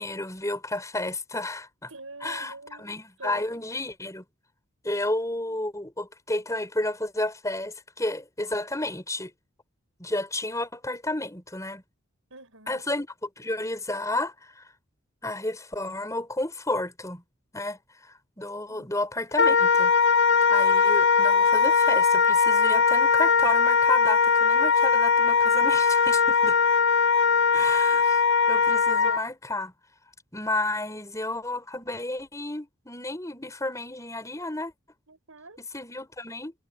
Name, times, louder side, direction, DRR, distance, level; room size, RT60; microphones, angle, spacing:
voice 1, 0.0-1.9 2.2-4.2 4.8-9.3 10.0-11.8 12.7-14.7 15.2-17.2 17.5-19.9 20.5-26.6 27.5-28.2 28.5-29.7 30.3-34.7 35.6-36.5, left 2 dB, 15° left, 5.4 m, -32 dB
voice 2, 1.9-2.9 3.2-3.4 12.3-12.8 18.7-18.9 27.6-27.7 30.9-31.0 35.1-35.6, right 2 dB, 70° right, 6.5 m, -45 dB
Wind instrument woodwind instrument, 19.3-29.2, left 5 dB, 50° left, 0.7 m, -20 dB
head